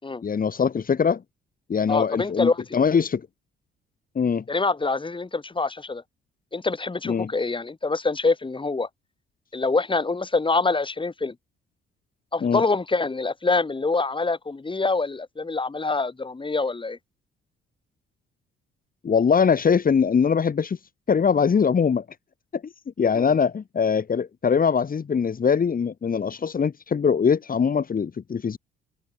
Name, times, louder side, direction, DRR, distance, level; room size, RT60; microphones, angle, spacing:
voice 1, 0.2-1.2 1.7-3.2 4.1-4.4 7.0-7.3 12.4-12.6 19.0-20.8 21.1-22.0 22.5-22.6 23.0-28.6, left 6 dB, 45° left, 4.4 m, -22 dB
voice 2, 1.9-2.6 4.5-6.0 6.5-8.9 9.5-11.3 12.3-17.0 23.1-23.3, left 3 dB, 25° left, 5.8 m, -25 dB
supercardioid pair, 75°, 21 cm